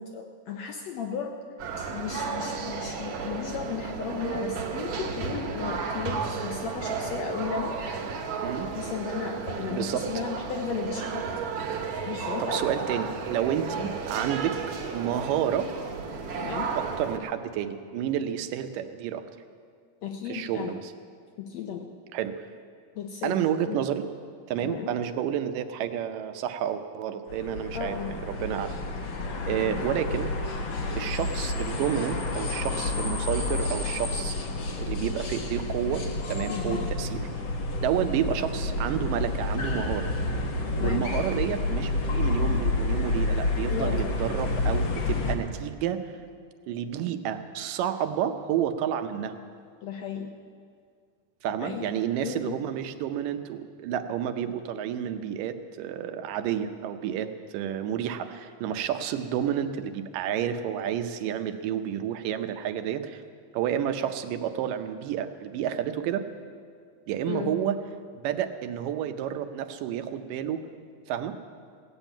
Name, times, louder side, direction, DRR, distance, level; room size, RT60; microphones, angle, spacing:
voice 1, 0.0-1.4 1.8-7.7 8.7-11.3 12.1-12.7 13.8-13.9 16.4-16.8 20.0-20.8 21.4-21.9 23.0-23.8 24.6-24.9 27.7-28.2 29.5-29.8 36.5-36.9 40.8-41.1 43.7-44.3 49.8-50.3 51.6-51.9 52.2-52.6 67.3-67.6, left 7 dB, 75° left, 3 dB, 1.6 m, -35 dB
sound 1, 1.6-17.2, right 5 dB, 65° right, 2.5 m, -33 dB
voice 2, 9.7-10.0 12.4-14.6 14.9-15.7 16.7-19.2 20.3-20.9 22.1-22.5 23.2-24.0 24.5-28.8 29.5-30.3 30.9-34.4 34.8-37.2 37.8-40.1 40.8-46.1 46.7-49.3 51.4-63.2 63.5-66.3 67.1-67.8 68.2-70.6 71.1-71.4, right 9 dB, 85° right, 8 dB, 2.4 m, -30 dB
sound 2, 27.3-45.4, left 2 dB, 55° left, 1.4 m, -29 dB
17.0 x 7.3 x 9.0 m, 2.1 s
omnidirectional pair, 3.8 m